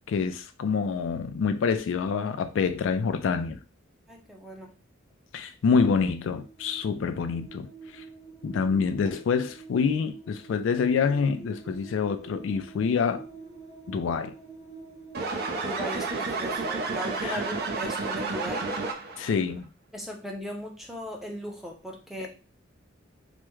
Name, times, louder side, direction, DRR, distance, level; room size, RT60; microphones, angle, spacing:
voice 1, 0.1-3.6 5.3-8.0 8.4-13.3 13.9-14.3 17.2-17.4 19.2-19.7 22.2-22.3, left 5 dB, 65° left, 0.3 m, -26 dB
voice 2, 4.1-4.7 15.6-18.7 19.9-22.3, equal, ahead, 0.6 m, -38 dB
sound 1, 6.0-16.6, right 4 dB, 20° right, 1.0 m, -47 dB
sound 2, 15.1-19.3, right 3 dB, 50° right, 0.6 m, -31 dB
3.4 x 2.1 x 3.1 m
head